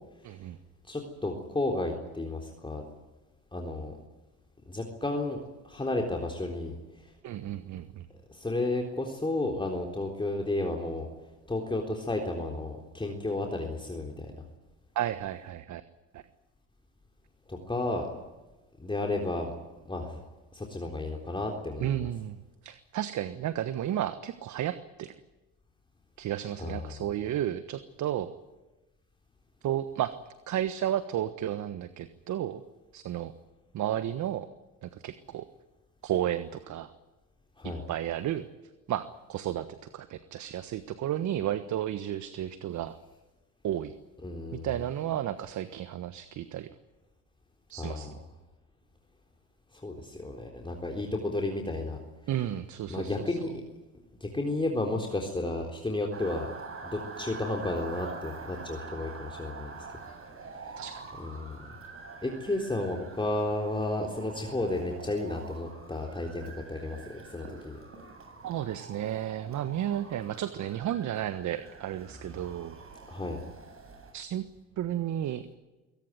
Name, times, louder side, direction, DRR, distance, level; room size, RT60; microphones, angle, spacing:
voice 1, 0.2-0.6 7.2-8.1 14.9-15.8 16.1-16.2 21.8-25.1 26.2-28.3 29.6-30.1 30.5-32.6 32.9-33.3 33.7-34.5 34.8-35.4 36.0-36.9 37.6-38.5 38.9-39.7 39.9-43.0 43.6-43.9 44.5-46.7 47.7-48.1 52.3-53.5 60.8-61.0 68.4-72.8 74.1-74.4 74.8-75.5, right 11 dB, 55° right, 12 dB, 1.4 m, -33 dB
voice 2, 0.9-2.8 3.5-4.0 4.7-6.7 7.0-7.1 8.3-11.1 11.5-14.3 17.5-18.1 18.8-19.5 19.9-20.2 20.5-22.1 26.6-27.0 37.6-37.8 44.2-44.7 47.8-48.2 49.7-52.0 52.9-53.6 54.2-56.5 56.8-59.9 61.2-61.6 62.2-67.8 73.1-73.4, left 2 dB, 15° left, 1 dB, 3.8 m, -32 dB
Motor vehicle (road) / Siren, 56.1-74.1, right 4 dB, 40° right, 7.9 m, -45 dB
23.0 x 18.0 x 9.2 m, 1.1 s
supercardioid pair, 80°, 36 cm